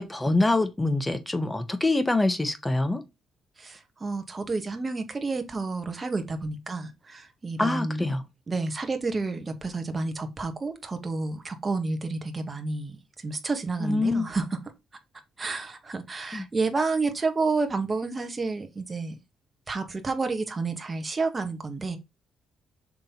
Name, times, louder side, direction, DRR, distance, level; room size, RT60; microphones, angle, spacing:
voice 1, 0.0-3.0 7.6-8.2 13.8-14.3 16.3-16.4, left 2 dB, 15° left, 1.3 m, -25 dB
voice 2, 3.6-8.1 8.5-14.6 15.4-19.2 19.7-22.0, right 3 dB, 30° right, 1.8 m, -30 dB
6.8 x 3.7 x 5.9 m
cardioid pair, 90°, 0 cm